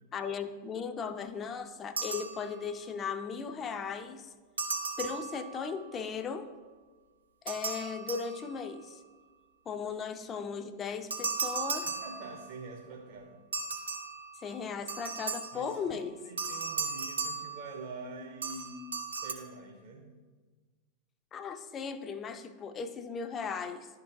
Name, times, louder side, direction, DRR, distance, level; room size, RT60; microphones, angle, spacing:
voice 1, 0.1-4.3 5.0-6.5 7.4-9.0 9.7-11.9 14.4-16.2 21.3-23.9, left 6 dB, 25° left, 9 dB, 0.5 m, -37 dB
sound 1, 2.0-2.9 4.6-5.9 7.5-8.9 11.1-12.7 13.5-15.8 16.4-18.1 18.4-19.3, right 5 dB, 75° right, 0.7 m, -37 dB
voice 2, 11.8-13.4 15.5-18.8 19.2-20.2, right 3 dB, 45° right, 0 dB, 0.8 m, -46 dB
11.5 x 4.0 x 2.6 m, 1.4 s
figure-of-eight pair, 90°, 0 cm